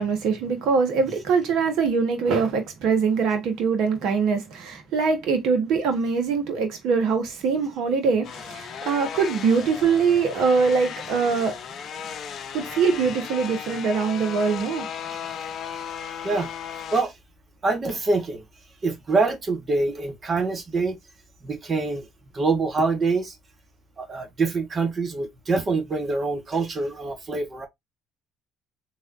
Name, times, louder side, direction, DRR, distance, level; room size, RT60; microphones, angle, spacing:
voice 1, 0.0-11.6 12.5-14.9, right 5 dB, 70° right, 1.2 m, -23 dB
sound 1, 8.2-17.0, left 7 dB, 55° left, 0.6 m, -35 dB
voice 2, 17.6-18.4 18.8-21.0 21.4-22.0 22.3-23.3 24.0-27.7, right 3 dB, 40° right, 1.3 m, -25 dB
3.6 x 3.1 x 2.6 m
hypercardioid pair, 60°, 0 cm